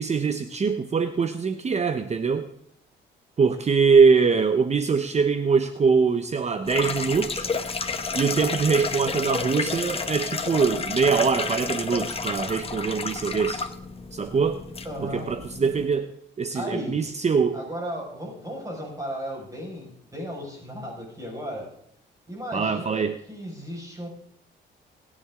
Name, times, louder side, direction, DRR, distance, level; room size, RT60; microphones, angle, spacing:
voice 1, 0.0-2.5 3.4-7.5 8.1-13.7 14.1-14.6 15.0-17.6 22.5-23.2, right 5 dB, 35° right, 10 dB, 0.9 m, -23 dB
sound 1, 6.7-15.9, left 4 dB, 30° left, 1.4 m, -31 dB
voice 2, 14.8-15.3 16.5-17.0 17.5-21.7 22.3-24.1, equal, 15° right, -1 dB, 5.5 m, -35 dB
24.5 x 10.0 x 3.7 m, 0.69 s
cardioid pair, 90°, 20 cm